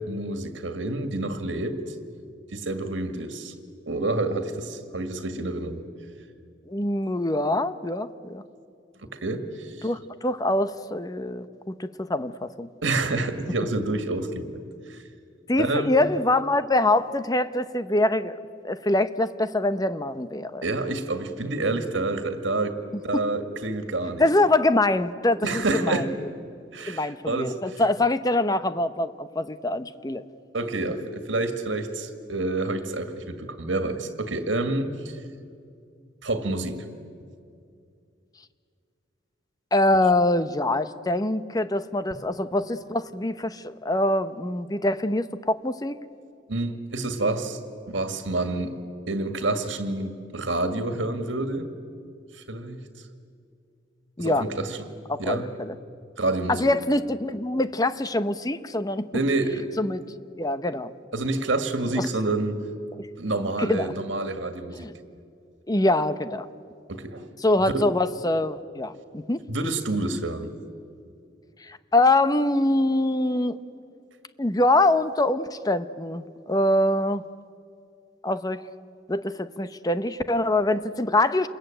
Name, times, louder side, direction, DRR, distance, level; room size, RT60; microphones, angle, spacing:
voice 1, 0.0-1.8 2.5-3.5 3.9-5.8 9.2-9.9 12.8-14.5 14.9-15.0 15.6-15.9 20.6-22.8 23.0-24.2 25.4-26.1 26.7-27.8 30.5-35.2 36.2-36.8 46.5-47.6 47.9-48.8 49.1-51.7 52.5-52.8 54.2-54.8 55.2-55.5 56.2-56.7 59.1-59.7 61.1-62.6 63.2-64.9 66.9-67.3 67.7-67.9 69.5-70.5, right 2 dB, 80° right, 7 dB, 2.0 m, -28 dB
voice 2, 6.7-8.4 9.8-12.7 15.5-18.4 18.6-20.6 23.1-23.2 24.2-26.1 26.9-30.2 39.7-46.0 54.2-54.5 55.1-55.7 56.5-59.1 59.8-60.0 60.4-60.9 63.0-63.1 63.6-63.9 64.8-64.9 65.7-66.5 67.4-69.4 71.6-73.6 74.4-77.2 78.2-78.6 79.1-81.5, left 2 dB, 20° left, 12 dB, 0.8 m, -24 dB
28.0 x 21.5 x 9.0 m, 2.4 s
head